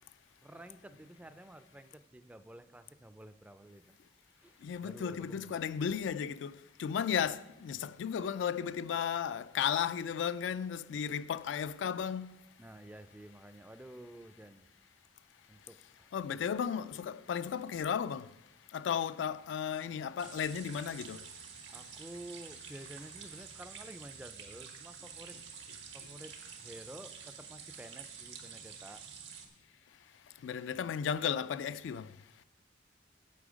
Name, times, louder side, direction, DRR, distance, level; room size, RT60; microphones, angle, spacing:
voice 1, 0.4-3.9 4.4-5.7 12.6-14.7 15.5-16.1 21.7-29.0, right 1 dB, 10° right, 0.3 m, -51 dB
voice 2, 4.6-12.4 16.1-18.3 18.7-21.2 30.4-32.1, left 8 dB, 80° left, 0.3 m, -34 dB
sound 1, 20.2-29.5, right 6 dB, 85° right, 1.4 m, -49 dB
8.4 x 8.0 x 5.0 m
head